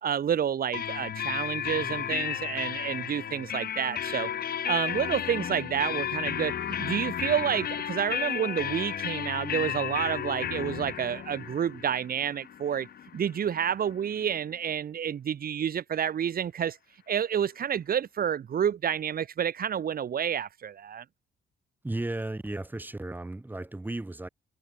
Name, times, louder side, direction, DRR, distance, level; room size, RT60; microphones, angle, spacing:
voice 1, 0.0-4.3 4.7-12.9 13.1-16.8 17.1-21.0, right 8 dB, 45° right, 3.3 m, -29 dB
sound 1, 0.7-14.3, left 9 dB, 50° left, 2.6 m, -33 dB
voice 2, 21.8-24.3, right 2 dB, 10° right, 7.1 m, -34 dB
cardioid pair, 170°, 20 cm